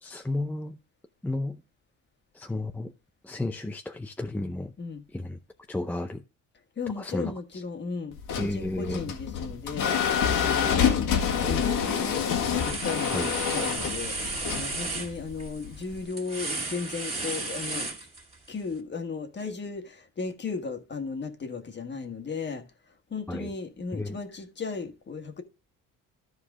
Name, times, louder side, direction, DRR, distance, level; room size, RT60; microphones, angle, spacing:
voice 1, 0.0-0.8 1.2-1.6 2.3-2.9 3.2-4.7 5.1-5.4 5.7-6.2 7.0-7.3 8.4-9.0 11.4-11.6 13.1-13.4 23.3-23.5 23.9-24.2, left 2 dB, 5° left, 0.6 m, -32 dB
voice 2, 6.8-11.1 11.5-12.3 12.6-14.2 14.5-17.9 18.5-22.6 23.1-25.4, left 4 dB, 35° left, 1.6 m, -35 dB
sound 1, 8.1-16.0, left 8 dB, 75° left, 1.8 m, -27 dB
sound 2, 11.3-11.7 12.0-18.5, right 2 dB, 20° right, 2.5 m, -34 dB
13.5 x 4.8 x 3.6 m
cardioid pair, 130°, 32 cm